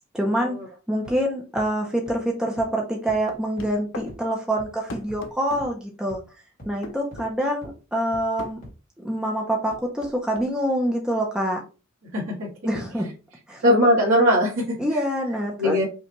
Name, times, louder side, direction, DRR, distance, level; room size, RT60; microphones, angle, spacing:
voice 1, 0.1-0.6 0.9-6.2 6.6-8.6 9.0-11.6 12.6-13.1 13.5-13.6 14.8-15.8, equal, 5° right, -1 dB, 0.6 m, -26 dB
sound 1, 1.0-1.1 1.5-1.6 2.1-2.2 2.6-2.7 3.1-3.2 3.6-3.7 4.1-4.2 4.6-4.7 5.1-5.2 5.6-5.7 6.1-6.2 6.6-6.7 7.1-7.2 7.6-7.7 8.1-8.2 8.6-8.7, equal, 40° left, 1.9 m, -42 dB
sound 2, 3.3-4.1 4.9-5.7 6.8-7.3 8.4-8.6 9.7-10.5, left 2 dB, 60° left, 0.6 m, -38 dB
voice 2, 12.1-12.5 12.8-12.9 13.6-14.6 15.6-15.9, equal, 65° right, -6 dB, 1.6 m, -20 dB
5.2 x 2.3 x 3.0 m, 0.32 s
head